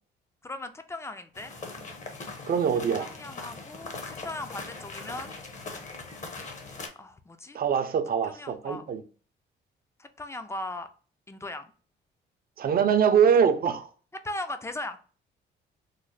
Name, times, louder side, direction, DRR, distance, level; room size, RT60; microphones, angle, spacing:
voice 1, 0.4-1.5 3.0-5.4 7.0-7.6 8.3-8.9 10.0-10.9 11.3-11.7 14.1-15.0, left 2 dB, 15° left, 0.4 m, -38 dB
sound 1, 1.3-6.9, left 3 dB, 40° left, 0.8 m, -40 dB
voice 2, 2.5-3.1 7.5-9.0 12.6-13.9, right 7 dB, 50° right, 0.5 m, -23 dB
3.1 x 2.0 x 3.9 m
cardioid pair, 90°, 20 cm